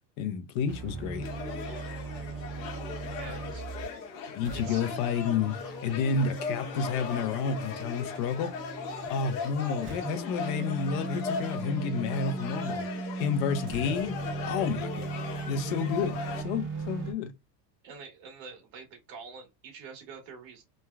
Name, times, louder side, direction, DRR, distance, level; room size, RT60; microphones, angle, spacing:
voice 1, 0.2-1.3 4.3-8.5 9.1-12.8 13.2-14.2 14.5-17.3, left 5 dB, 50° left, 0.6 m, -30 dB
sound 1, 0.7-4.0 4.4-9.2 9.8-17.1, right 4 dB, 25° right, 0.6 m, -38 dB
sound 2, 1.2-16.4, left 5 dB, 80° left, 1.1 m, -38 dB
voice 2, 1.6-1.9 3.2-3.6 4.5-4.9 17.8-20.6, right 5 dB, 55° right, 1.3 m, -46 dB
3.1 x 2.2 x 2.2 m
supercardioid pair, 160°, 50 cm